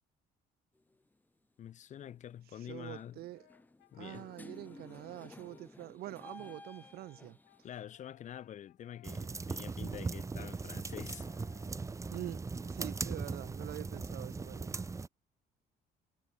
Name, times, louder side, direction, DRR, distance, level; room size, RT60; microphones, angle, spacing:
sound 1, 0.8-1.0 2.0-2.2 2.6-7.7, left 2 dB, 10° left, 1.7 m, -54 dB
voice 1, 1.6-3.2 3.9-4.3 7.6-11.3, left 10 dB, 45° left, 0.6 m, -47 dB
voice 2, 2.5-3.5 4.0-7.4 12.1-14.8, right 16 dB, 70° right, 0.6 m, -46 dB
Brass instrument, 3.3-5.8 6.4-13.4, left 17 dB, 80° left, 2.8 m, -65 dB
sound 2, 9.0-15.1, right 4 dB, 20° right, 0.8 m, -39 dB
cardioid pair, 110°, 17 cm